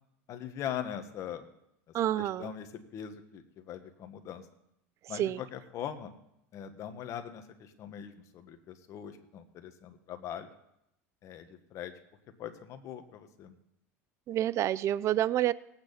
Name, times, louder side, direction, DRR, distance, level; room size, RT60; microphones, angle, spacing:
voice 1, 0.3-1.5 2.2-4.5 5.1-6.1 6.5-10.5 11.2-11.9 12.4-13.5, left 9 dB, 45° left, 8 dB, 1.5 m, -41 dB
voice 2, 1.9-2.5 5.1-5.4 14.3-15.5, right 12 dB, 45° right, 19 dB, 0.4 m, -28 dB
19.0 x 8.8 x 4.2 m, 0.82 s
supercardioid pair, 105°, 7 cm